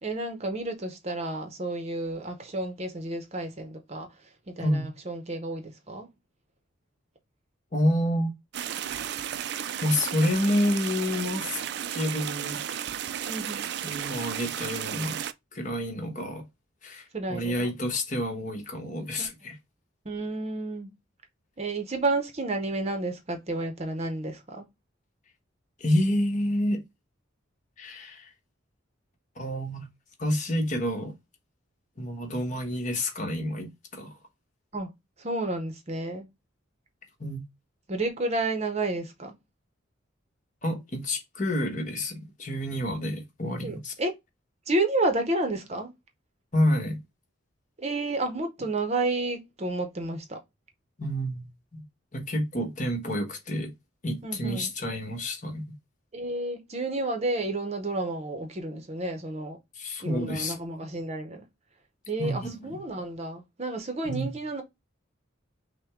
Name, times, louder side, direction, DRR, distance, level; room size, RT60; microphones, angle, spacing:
voice 1, 0.0-6.1 13.2-13.7 17.1-17.7 19.2-19.5 20.0-20.9 21.6-24.7 34.7-34.9 35.2-36.3 37.9-39.4 43.6-44.1 44.7-45.9 47.8-50.4 54.2-54.7 56.1-59.6 60.0-61.4 62.1-64.6, right 2 dB, 35° right, 0.8 m, -31 dB
voice 2, 7.7-8.3 9.8-11.6 11.9-12.9 13.8-15.2 15.5-16.4 16.8-19.5 25.8-26.8 27.8-28.3 29.4-29.9 30.2-31.1 32.0-34.2 37.2-37.4 40.6-43.9 46.5-47.0 51.0-51.8 52.1-53.7 54.0-55.6 59.8-60.6 62.2-62.8 64.0-64.4, left 1 dB, 40° left, 1.2 m, -29 dB
sound 1, 8.5-15.3, right 9 dB, 55° right, 0.3 m, -33 dB
6.1 x 2.2 x 3.6 m
head